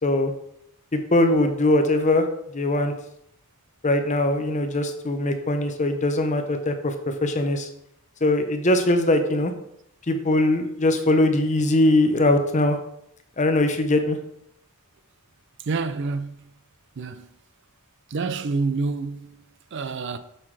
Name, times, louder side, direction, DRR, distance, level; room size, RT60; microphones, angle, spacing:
voice 1, 0.9-2.3 2.5-2.9 3.8-7.7 8.2-9.5 10.1-12.8 13.4-14.2, left 1 dB, 35° left, 0.7 m, -21 dB
voice 2, 15.6-16.5 17.0-17.3 18.1-20.2, right 4 dB, 55° right, 0.5 m, -28 dB
7.2 x 6.7 x 3.3 m
head